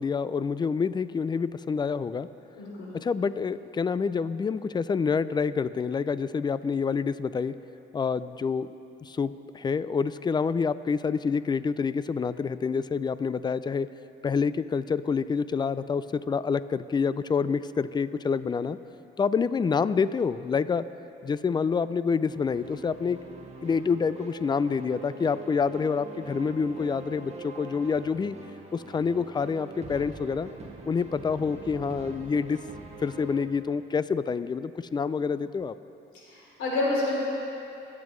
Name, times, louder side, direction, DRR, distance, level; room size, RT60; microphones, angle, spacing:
voice 1, 0.0-2.3 2.9-7.5 7.9-8.7 9.0-13.9 14.2-18.8 19.2-20.8 21.2-23.2 23.6-28.4 28.7-30.5 30.9-32.6 33.0-35.7, left 5 dB, 20° left, 15 dB, 0.3 m, -27 dB
voice 2, 2.5-2.9 36.1-37.2, left 2 dB, 90° left, -5 dB, 3.1 m, -29 dB
sound 1, 22.3-33.4, right 3 dB, 35° right, 1.5 m, -44 dB
21.0 x 8.3 x 3.1 m, 2.8 s
cardioid pair, 90°, 20 cm